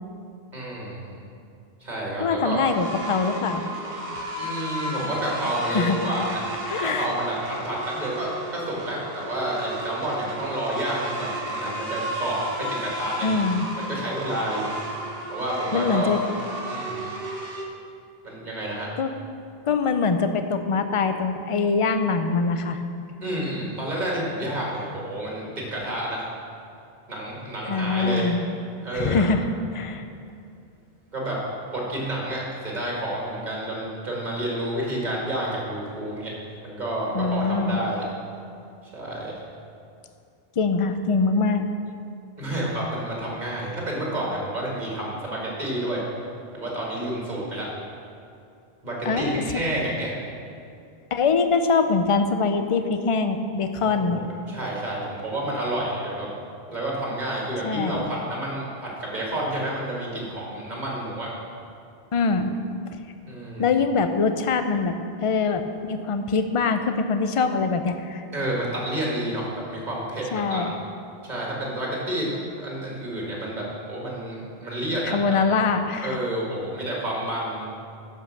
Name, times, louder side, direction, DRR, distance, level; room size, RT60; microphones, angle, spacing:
voice 1, 0.5-1.1 1.8-2.6 4.4-6.4 6.8-13.3 13.8-14.8 15.3-16.1 16.7-17.0 18.2-18.9 23.2-26.2 27.1-28.3 28.8-29.2 31.1-31.4 31.7-36.3 36.6-38.0 38.9-39.3 42.4-46.0 46.5-47.7 48.8-50.1 53.8-56.3 56.7-61.3 63.2-63.7 68.3-70.6 71.2-75.2 76.0-77.7, right 1 dB, 45° right, -4 dB, 2.4 m, -29 dB
voice 2, 2.2-3.6 5.7-6.0 6.7-7.1 13.2-13.7 15.7-16.2 19.0-19.1 19.7-22.8 27.7-28.5 28.9-29.4 29.7-30.0 37.1-37.8 40.6-41.6 49.1-49.4 51.1-54.3 57.6-58.0 62.1-62.5 63.6-68.3 70.3-70.7 75.1-76.2, left 4 dB, 40° left, 8 dB, 0.5 m, -23 dB
sound 1, 2.6-17.6, right 1 dB, 65° right, 1.4 m, -33 dB
11.5 x 5.5 x 6.5 m, 2.5 s
omnidirectional pair, 1.0 m